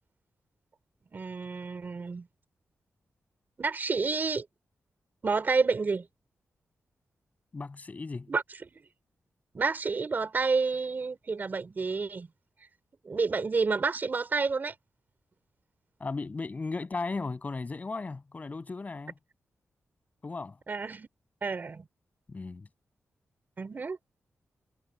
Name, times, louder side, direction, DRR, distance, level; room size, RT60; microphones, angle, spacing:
voice 1, 1.1-2.3 3.6-4.5 5.2-6.1 8.3-8.7 9.5-12.3 13.0-14.7 20.7-21.1 21.4-21.8 23.6-24.0, right 4 dB, 40° right, 4.8 m, -29 dB
voice 2, 7.5-8.3 16.0-19.1 20.2-20.6 22.3-22.7, left 3 dB, 30° left, 7.5 m, -36 dB
wide cardioid pair, 120°, 5 cm